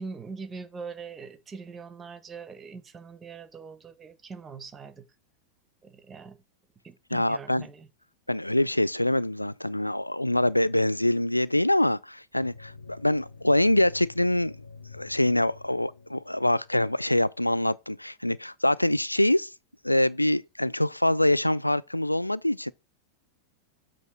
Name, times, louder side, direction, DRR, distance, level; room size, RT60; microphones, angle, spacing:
voice 1, 0.0-5.0 5.8-6.4 6.8-7.9, right 5 dB, 20° right, 1.0 m, -42 dB
voice 2, 7.1-7.7 8.3-14.6 14.9-19.5 19.8-22.7, left 1 dB, 85° left, 0.3 m, -24 dB
sound 1, 12.4-17.1, left 4 dB, 70° left, 0.8 m, -48 dB
7.9 x 3.0 x 5.9 m
figure-of-eight pair, 90°, 0 cm